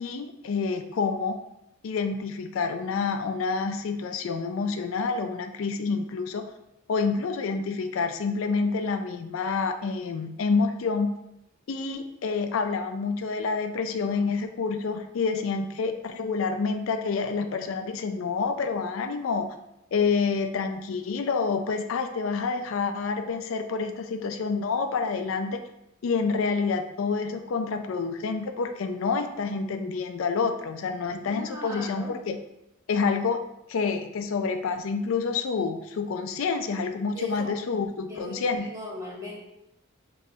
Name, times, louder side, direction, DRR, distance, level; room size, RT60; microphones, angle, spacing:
voice 1, 0.0-1.4 1.8-6.4 6.9-11.1 11.7-19.6 19.9-25.6 26.0-32.4 32.9-33.4 33.7-38.7, left 4 dB, 80° left, 7 dB, 0.4 m, -28 dB
voice 2, 31.2-32.2 37.1-37.5 38.1-39.4, equal, 15° right, -4 dB, 1.1 m, -38 dB
5.4 x 3.1 x 2.7 m, 0.84 s
head